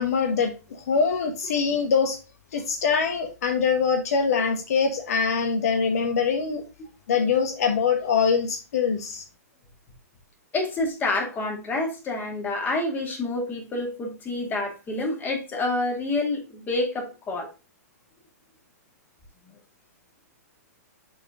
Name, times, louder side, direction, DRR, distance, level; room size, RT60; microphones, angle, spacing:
voice 1, 0.0-2.2 2.5-6.6 7.1-9.2, left 5 dB, 65° left, 1.1 m, -23 dB
voice 2, 10.5-17.5, left 2 dB, 20° left, 2.1 m, -28 dB
6.4 x 4.2 x 3.7 m
hypercardioid pair, 125°, 9 cm